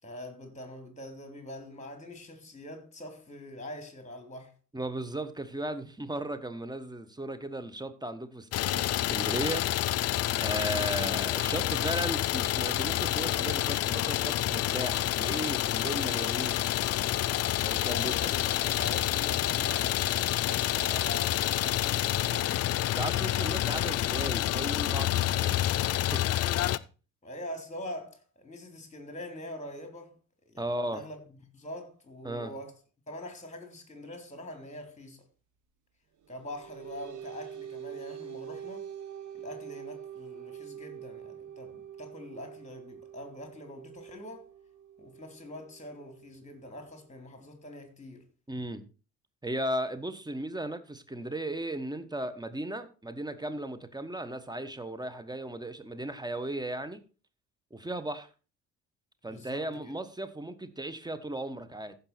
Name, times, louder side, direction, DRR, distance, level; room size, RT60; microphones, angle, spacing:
voice 1, 0.0-4.5 17.9-20.0 20.4-22.6 23.3-23.5 27.2-30.1 30.4-32.8 33.1-35.2 36.3-38.9 39.3-44.5 45.0-48.3 59.3-59.9, left 1 dB, 20° left, 3.4 m, -44 dB
voice 2, 4.7-9.6 10.4-16.6 17.6-18.3 23.0-25.6 25.9-26.3 30.6-31.0 32.2-32.5 48.5-48.8 49.4-57.0 57.7-58.3 59.2-62.0, right 1 dB, 10° right, 1.3 m, -36 dB
Idling, 8.5-26.8, left 13 dB, 40° left, 0.5 m, -28 dB
sound 1, 36.2-47.2, right 9 dB, 50° right, 1.7 m, -45 dB
15.0 x 5.6 x 4.3 m
figure-of-eight pair, 50°, 39 cm